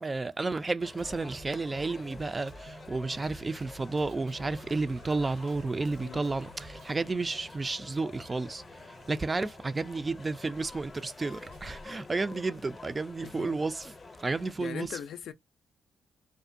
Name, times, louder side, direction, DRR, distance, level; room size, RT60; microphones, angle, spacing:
voice 1, 0.0-14.9, right 3 dB, 30° right, 0.3 m, -32 dB
sound 1, 0.8-14.5, left 3 dB, 35° left, 0.6 m, -48 dB
Drum kit, 1.0-7.0, right 2 dB, 65° right, 0.7 m, -51 dB
sound 2, 4.6-12.2, right 1 dB, 90° right, 1.2 m, -57 dB
voice 2, 13.2-13.6 14.6-15.3, left 9 dB, 75° left, 0.4 m, -40 dB
2.5 x 2.2 x 2.5 m
cardioid pair, 75°, 0 cm